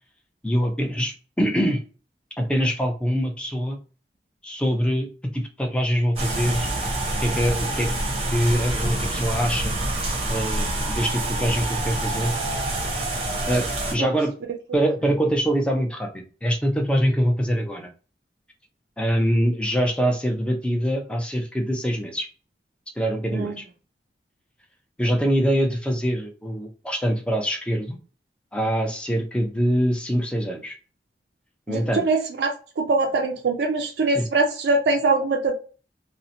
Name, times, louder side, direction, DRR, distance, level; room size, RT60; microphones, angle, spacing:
voice 1, 0.4-1.8 2.4-3.8 4.4-5.1 5.3-6.7 7.2-7.9 8.3-9.8 10.3-12.3 13.5-14.3 14.7-17.9 19.0-22.3 23.0-23.6 25.0-28.0 28.5-30.8 31.7-32.0 34.1-34.2, equal, 5° left, 2 dB, 0.4 m, -24 dB
sound 1, 6.2-13.9, right 2 dB, 35° right, 0.7 m, -27 dB
voice 2, 31.7-32.5 32.8-35.5, right 3 dB, 75° right, 2 dB, 0.4 m, -22 dB
2.7 x 2.1 x 2.6 m, 0.36 s
head